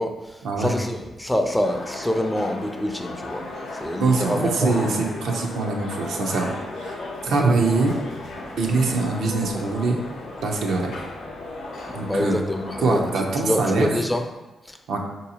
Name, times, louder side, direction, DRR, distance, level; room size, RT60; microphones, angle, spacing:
voice 1, 0.0-3.5 3.7-4.9 7.3-7.4 11.9-14.3 14.7-14.8, left 1 dB, 10° left, 5 dB, 0.4 m, -26 dB
sound 1, 1.6-13.9, left 2 dB, 80° left, 0.6 m, -35 dB
voice 2, 4.0-7.0 7.2-7.9 8.6-10.0 10.4-10.9 11.9-12.4 12.8-13.9 14.9-15.0, right 3 dB, 80° right, 1 dB, 0.5 m, -23 dB
3.9 x 2.7 x 2.8 m, 1.1 s
supercardioid pair, 60°, 0 cm